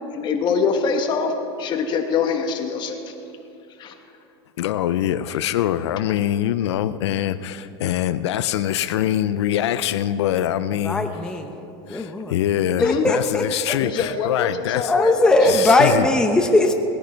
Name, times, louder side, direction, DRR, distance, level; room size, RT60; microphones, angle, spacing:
voice 1, 0.1-1.3 1.6-3.1 3.8-3.9 5.3-5.4 12.8-13.1 13.8-15.5 15.7-15.8, left 5 dB, 35° left, 4 dB, 1.5 m, -24 dB
voice 2, 4.6-11.2 11.9-16.1, left 11 dB, 90° left, 12 dB, 0.5 m, -24 dB
voice 3, 10.8-11.5 11.9-12.4 12.8-13.4 13.7-13.8 14.8-16.7, left 2 dB, 5° left, 4 dB, 0.8 m, -19 dB
19.0 x 10.0 x 4.5 m, 2.8 s
supercardioid pair, 135°, 14 cm